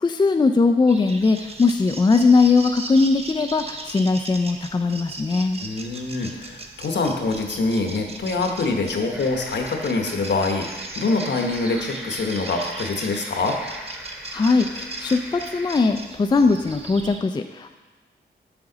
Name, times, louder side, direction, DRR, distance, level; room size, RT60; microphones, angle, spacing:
voice 1, 0.0-5.6 14.3-17.7, left 4 dB, 25° left, 6 dB, 0.4 m, -20 dB
sound 1, 0.9-17.2, right 2 dB, 30° right, 0.7 m, -38 dB
voice 2, 5.6-13.6, left 3 dB, 70° left, 3 dB, 1.0 m, -25 dB
sound 2, 9.1-15.7, equal, 10° right, 1.1 m, -40 dB
7.0 x 5.8 x 3.9 m, 1.3 s
cardioid pair, 75°, 19 cm